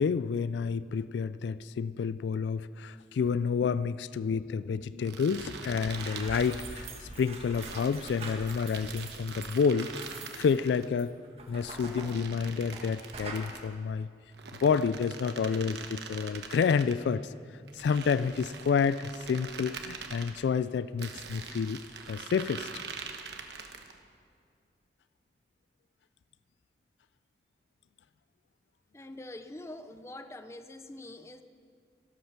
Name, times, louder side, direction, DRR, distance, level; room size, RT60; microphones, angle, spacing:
voice 1, 0.0-9.9 10.4-11.1 11.5-14.1 14.6-17.3 17.7-22.7, left 6 dB, 80° left, 16 dB, 0.3 m, -29 dB
sound 1, 5.0-6.9 7.5-10.9 11.6-13.7 14.3-17.0 17.7-20.4 21.0-24.0, right 5 dB, 75° right, 1.1 m, -44 dB
sound 2, 5.7-12.9 13.1-13.5, right 3 dB, 35° right, 1.5 m, -44 dB
voice 2, 28.9-31.4, left 1 dB, 15° left, 9 dB, 0.5 m, -44 dB
13.5 x 12.5 x 5.9 m, 2.3 s
head